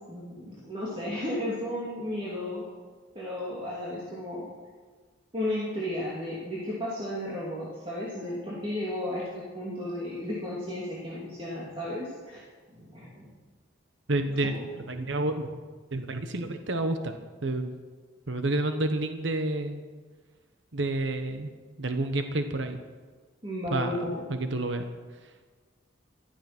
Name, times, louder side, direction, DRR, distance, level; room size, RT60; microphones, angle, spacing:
voice 1, 0.1-2.7 3.1-4.5 5.3-12.4 12.8-13.3 14.4-14.7 23.4-24.2, left 1 dB, 25° right, -6 dB, 2.8 m, -34 dB
voice 2, 14.1-15.6 15.9-17.1 17.4-17.8 18.3-19.8 20.7-21.5 21.8-22.8 23.7-24.9 25.2-25.5, right 2 dB, 65° right, 7 dB, 1.1 m, -29 dB
15.0 x 13.5 x 6.0 m, 1.5 s
head